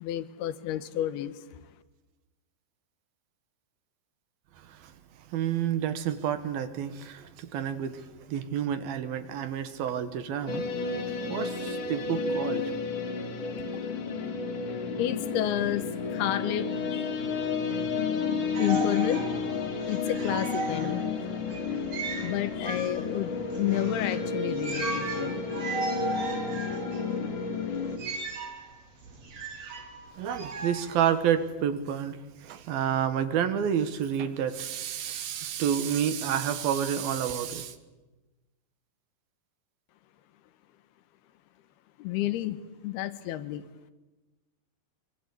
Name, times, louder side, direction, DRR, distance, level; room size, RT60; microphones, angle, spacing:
voice 1, 0.0-1.5 13.9-14.2 15.0-17.2 18.6-19.3 19.9-21.0 22.2-25.4 42.0-43.6, left 12 dB, 85° left, 3.1 m, -31 dB
voice 2, 4.6-4.9 5.3-12.6 30.1-37.8, right 9 dB, 70° right, 3.2 m, -30 dB
sound 1, 10.5-28.0, left 4 dB, 55° left, 3.7 m, -31 dB
sound 2, 18.5-31.5, right 3 dB, 40° right, 4.1 m, -37 dB
24.5 x 24.5 x 8.6 m
omnidirectional pair, 4.5 m